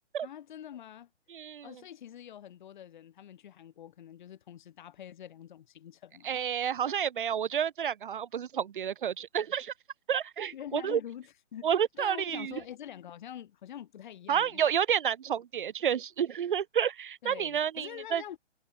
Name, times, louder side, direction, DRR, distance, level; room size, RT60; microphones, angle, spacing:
voice 1, 0.2-1.1 1.6-6.4 10.5-11.7 11.9-14.6 17.2-18.4, left 10 dB, 40° left, 3.9 m, -45 dB
voice 2, 1.3-1.7 6.2-9.7 10.1-11.0 11.6-12.5 14.3-18.2, right 8 dB, 45° right, 0.5 m, -30 dB
hypercardioid pair, 155°, 36 cm